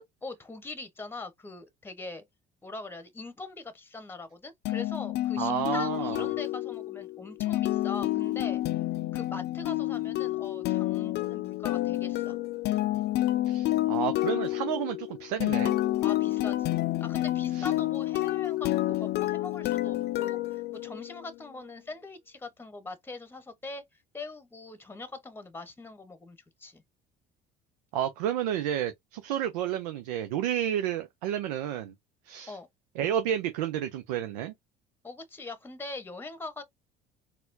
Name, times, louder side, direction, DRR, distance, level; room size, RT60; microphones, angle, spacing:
voice 1, 0.2-2.2 2.6-8.6 9.1-12.4 16.0-26.8 32.5-32.7 35.0-36.6, left 3 dB, 10° left, 0.9 m, -42 dB
sound 1, 4.6-21.3, left 16 dB, 55° left, 0.5 m, -29 dB
voice 2, 5.4-6.3 13.5-15.8 17.5-17.7 27.9-31.9 32.3-32.6 33.0-34.5, right 10 dB, 80° right, 0.5 m, -31 dB
4.2 x 2.2 x 2.5 m
hypercardioid pair, 70°, 20 cm